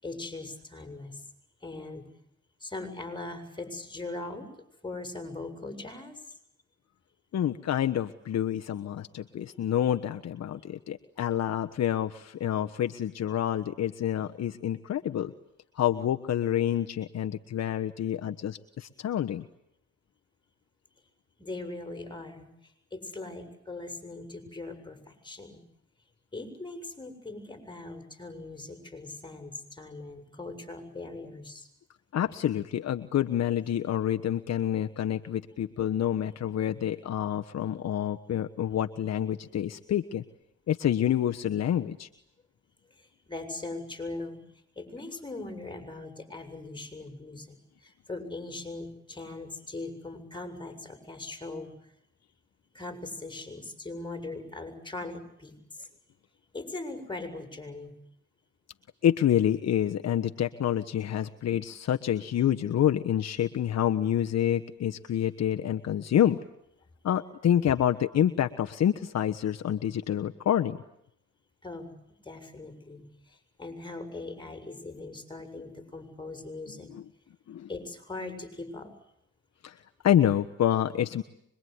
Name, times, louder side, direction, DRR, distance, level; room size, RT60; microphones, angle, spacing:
voice 1, 0.0-1.2 1.6-2.1 2.6-4.5 4.8-6.2 21.4-25.6 26.3-31.7 43.0-44.4 44.8-51.9 52.7-55.9 56.5-57.9 71.6-76.9 77.7-78.9, left 2 dB, 15° left, 6 dB, 7.6 m, -40 dB
voice 2, 7.3-15.3 15.7-19.5 32.1-40.2 40.7-42.1 59.0-66.4 67.0-70.8 76.9-77.0 77.5-77.7 79.6-79.8 80.0-81.2, left 10 dB, 60° left, 7 dB, 1.3 m, -27 dB
25.5 x 23.0 x 9.6 m, 0.76 s
cardioid pair, 90°, 30 cm